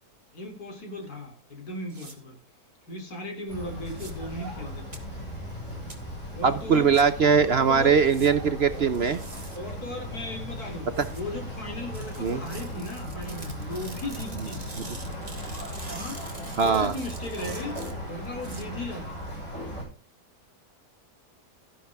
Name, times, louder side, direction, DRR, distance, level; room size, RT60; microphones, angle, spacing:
voice 1, 0.3-2.4 2.9-5.0 6.3-6.9 7.4-8.0 8.4-8.6 9.5-14.6 15.9-16.2 16.6-17.8 18.1-19.1, left 1 dB, 80° left, 4 dB, 3.7 m, -37 dB
sound 1, 1.9-2.1 3.9-4.1 4.9-5.0 5.9-6.0 6.9-7.0 8.0-8.3 8.9-9.6 10.9-11.2 11.9-18.6, right 3 dB, 25° right, 2.0 m, -45 dB
sound 2, 3.5-19.8, equal, 50° left, 7.2 m, -37 dB
sound 3, 4.0-12.5, left 3 dB, 5° left, 4.9 m, -46 dB
voice 2, 6.4-9.2 11.0-11.1 12.2-12.4 16.6-16.9, right 6 dB, 50° right, 12 dB, 0.8 m, -21 dB
13.0 x 11.0 x 3.5 m, 0.35 s
omnidirectional pair, 1.6 m